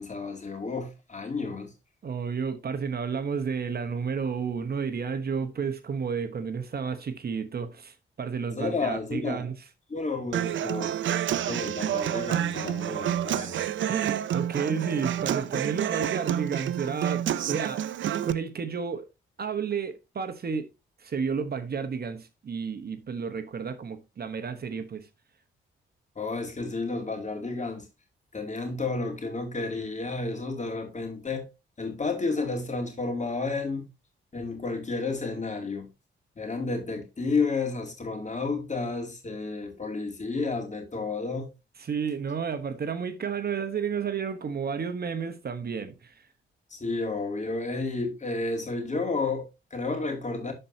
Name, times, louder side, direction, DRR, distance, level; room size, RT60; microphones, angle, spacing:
voice 1, 0.0-1.7 8.6-9.5 9.9-11.0 11.3-13.7 26.2-27.9 28.3-31.5 31.8-33.8 34.3-35.9 36.4-41.5 46.7-50.5, left 3 dB, 35° left, 2.6 m, -31 dB
voice 2, 2.0-9.5 13.9-17.8 18.2-19.1 19.4-20.7 21.0-25.1 41.8-46.2, right 6 dB, 50° right, 1.0 m, -31 dB
Human voice / Acoustic guitar, 10.3-18.3, right 10 dB, 65° right, 0.5 m, -29 dB
12.0 x 4.4 x 2.7 m
cardioid pair, 75°, 21 cm